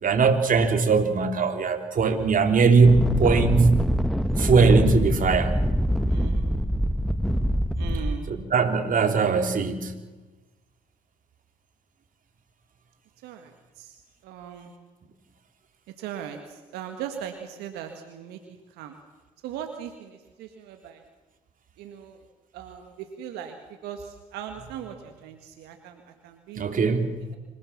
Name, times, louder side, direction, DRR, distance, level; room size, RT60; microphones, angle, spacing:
voice 1, 0.0-3.8 4.4-5.5 8.3-9.9 26.6-27.1, right 4 dB, 55° right, 6 dB, 3.3 m, -20 dB
sound 1, 2.8-8.2, equal, ahead, 1.7 m, -24 dB
voice 2, 6.1-6.5 7.8-8.3 13.2-14.0 14.2-14.7 16.0-18.4 18.8-19.0 19.4-21.0 21.8-22.2 22.5-23.6 23.8-26.7 27.2-27.4, right 9 dB, 75° right, 5 dB, 1.9 m, -39 dB
26.5 x 17.5 x 7.2 m, 1.2 s
hypercardioid pair, 45°, 17 cm